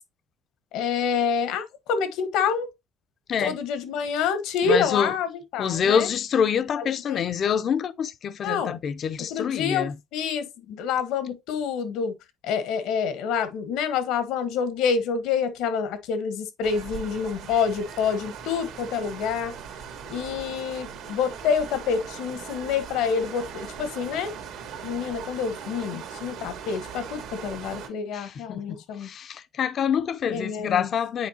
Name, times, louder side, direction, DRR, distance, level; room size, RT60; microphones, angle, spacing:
voice 1, 0.7-2.7 3.4-6.1 6.8-7.2 8.4-8.8 9.3-12.1 12.4-19.5 20.1-24.3 24.8-29.1 30.3-30.9, left 6 dB, 75° left, 1.2 m, -27 dB
voice 2, 4.6-5.1 5.6-9.9 28.1-31.3, left 7 dB, 40° left, 0.5 m, -26 dB
sound 1, 16.6-27.9, right 7 dB, 70° right, 1.8 m, -39 dB
8.5 x 4.4 x 2.8 m
cardioid pair, 140°, 0 cm